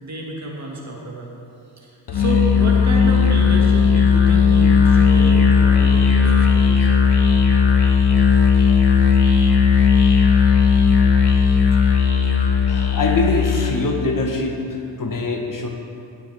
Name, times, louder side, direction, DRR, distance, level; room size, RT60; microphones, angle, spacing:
voice 1, 0.0-1.3 1.8-6.9, right 2 dB, 40° right, -2 dB, 1.8 m, -30 dB
Musical instrument, 2.1-13.8, left 6 dB, 80° left, 1.2 m, -15 dB
voice 2, 12.6-15.7, left 2 dB, 50° left, 2 dB, 1.1 m, -23 dB
16.5 x 6.3 x 3.4 m, 2.5 s
cardioid pair, 95°, 41 cm